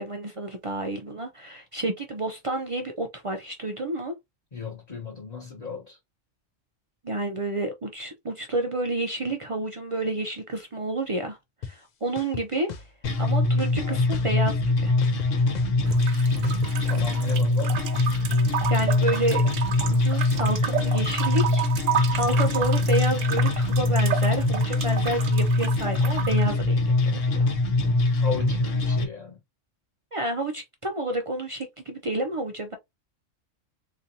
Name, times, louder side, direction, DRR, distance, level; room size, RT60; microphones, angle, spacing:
voice 1, 0.0-4.1 7.0-12.9 13.2-14.9 18.7-19.4 19.9-21.7 22.2-26.8 27.1-27.5 30.1-32.8, right 2 dB, 50° right, 0.3 m, -30 dB
voice 2, 4.5-6.0 16.8-17.8 28.2-29.4, left 5 dB, 35° left, 1.1 m, -35 dB
sound 1, 11.6-11.7 12.2-13.1 13.6-14.7 15.0-17.2, left 7 dB, 55° left, 0.5 m, -37 dB
sound 2, 13.0-29.0, left 2 dB, 70° left, 1.3 m, -23 dB
sound 3, 15.9-26.5, right 9 dB, 75° right, 1.0 m, -32 dB
3.9 x 3.0 x 2.7 m
omnidirectional pair, 1.4 m